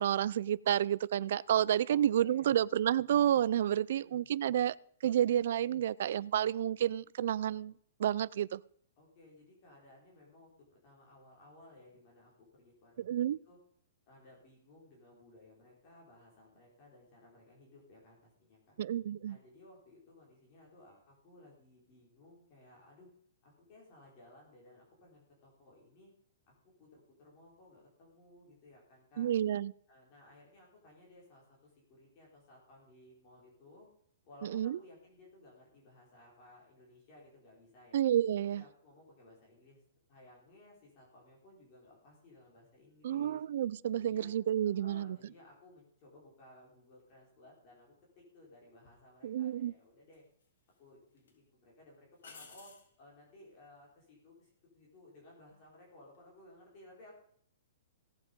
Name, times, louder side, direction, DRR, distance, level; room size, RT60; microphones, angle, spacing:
voice 1, 0.0-4.7 5.0-7.7 8.0-8.6 13.0-13.4 18.8-19.4 29.2-29.7 34.4-34.8 37.9-38.6 43.0-45.2 49.2-49.7, right 10 dB, 50° right, 0.4 m, -30 dB
voice 2, 1.9-2.5 3.8-4.3 9.0-13.6 14.1-18.8 19.3-23.1 23.4-26.1 26.5-29.3 29.9-33.9 34.2-38.0 38.5-39.8 40.1-43.4 44.0-44.3 44.8-50.2 50.8-57.1, left 1 dB, 25° left, 4.0 m, -59 dB
sound 1, 48.8-49.0 50.1-50.8 51.2-51.3 52.2-52.9 56.0-56.4, left 4 dB, 70° left, 4.5 m, -54 dB
17.0 x 8.0 x 5.3 m
hypercardioid pair, 180°, 0 cm